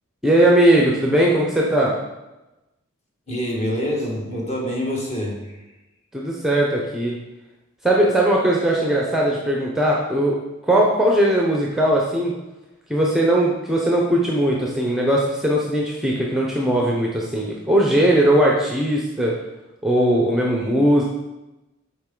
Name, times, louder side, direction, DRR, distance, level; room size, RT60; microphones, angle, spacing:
voice 1, 0.2-2.0 6.1-7.1 7.8-10.4 10.6-12.3 12.9-19.3 19.8-21.0, right 1 dB, ahead, -2 dB, 0.7 m, -19 dB
voice 2, 3.3-5.7, equal, 35° left, -2 dB, 1.6 m, -26 dB
7.7 x 4.5 x 3.8 m, 1.0 s
head